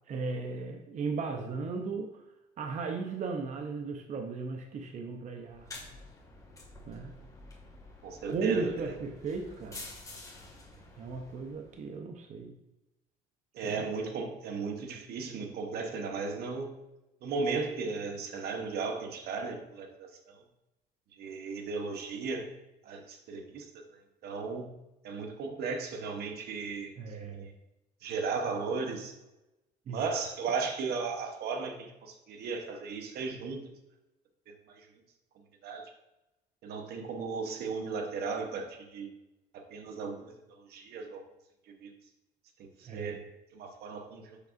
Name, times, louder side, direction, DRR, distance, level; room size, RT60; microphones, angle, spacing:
voice 1, 0.1-2.1 2.6-5.7 6.9-7.1 8.3-9.9 11.0-12.5 13.6-13.9 27.0-27.5 29.9-30.0 42.8-43.2, right 4 dB, 45° right, 4 dB, 0.7 m, -36 dB
sound 1, 5.5-11.9, left 2 dB, 20° left, 1.8 m, -49 dB
voice 2, 8.0-8.9 13.5-16.8 17.2-20.4 21.2-22.5 22.8-23.8 24.2-24.7 25.0-26.9 28.0-29.1 29.9-33.6 34.5-34.9 35.6-35.9 36.6-39.1 39.5-41.2 41.8-41.9 42.8-43.2 43.5-44.4, right 4 dB, 70° right, 5 dB, 0.9 m, -36 dB
6.6 x 5.9 x 2.5 m, 0.95 s
cardioid pair, 110°, 17 cm